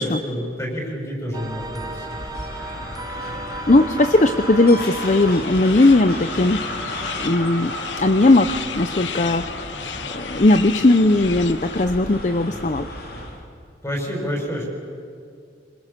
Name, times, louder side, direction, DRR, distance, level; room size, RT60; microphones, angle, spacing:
voice 1, 0.0-2.2 13.8-14.6, equal, 15° left, 0 dB, 6.7 m, -28 dB
sound 1, 1.3-5.6, right 2 dB, 20° right, 0.9 m, -34 dB
sound 2, 1.4-13.5, left 1 dB, 55° left, 3.4 m, -33 dB
voice 2, 3.7-6.7 7.2-9.5 10.1-12.9, left 2 dB, 40° left, 9 dB, 0.7 m, -17 dB
sound 3, 4.8-11.9, left 9 dB, 85° left, 0.9 m, -35 dB
26.5 x 26.0 x 7.4 m, 2.2 s
head